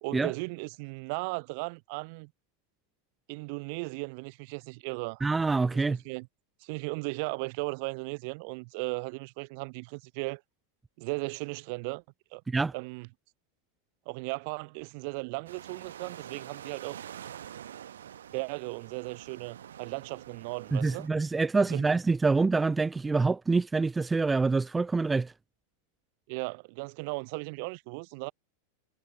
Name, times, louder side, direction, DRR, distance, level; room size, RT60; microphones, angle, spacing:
voice 1, 0.0-2.3 3.3-5.2 5.7-6.3 6.6-10.4 11.0-12.0 12.3-12.4 12.7-13.1 14.1-17.0 18.3-21.1 21.7-21.9 26.3-28.3, right 31 dB, 45° right, 0.7 m, -36 dB
voice 2, 5.2-6.0 12.5-12.7 20.7-25.3, right 3 dB, 10° right, 0.3 m, -26 dB
sound 1, 15.5-21.1, right 10 dB, 65° right, 1.0 m, -46 dB
figure-of-eight pair, 90°, 0 cm